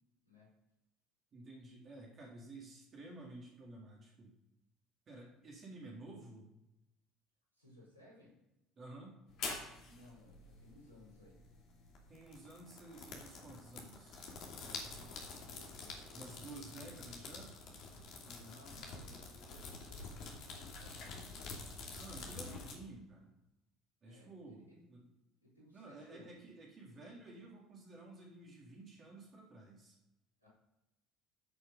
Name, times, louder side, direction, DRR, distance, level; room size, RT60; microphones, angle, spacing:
voice 1, 1.3-4.3 5.1-6.5 8.8-9.2 12.1-14.3 16.1-17.5 21.9-23.3 24.0-25.1 25.7-30.0, right 2 dB, 40° right, -2 dB, 3.5 m, -52 dB
voice 2, 7.5-8.4 9.8-11.5 14.8-17.2 18.2-21.5 24.0-24.9 25.4-26.4 30.4-30.5, left 1 dB, 90° right, -6 dB, 4.7 m, -61 dB
sound 1, 9.3-22.7, left 4 dB, 55° left, 2.8 m, -48 dB
14.0 x 6.7 x 5.2 m, 0.90 s
figure-of-eight pair, 60°, 0 cm